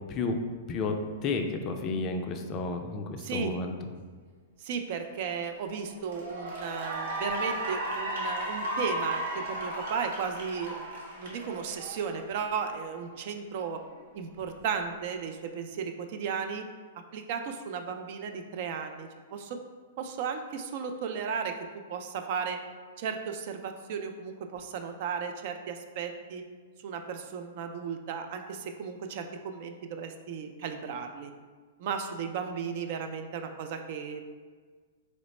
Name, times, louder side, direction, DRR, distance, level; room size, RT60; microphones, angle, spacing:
voice 1, 1.2-3.7, left 3 dB, 35° left, 5 dB, 0.3 m, -31 dB
voice 2, 3.2-3.6 4.6-13.8 14.1-16.7 17.1-19.6 20.0-22.6 23.0-26.4 26.8-31.3 31.8-34.2, right 6 dB, 55° right, 6 dB, 0.3 m, -35 dB
Cheering / Applause, 5.5-5.6 6.0-12.5, right 1 dB, 75° right, 1.0 m, -35 dB
3.1 x 2.0 x 4.1 m, 1.5 s
hypercardioid pair, 130°, 0 cm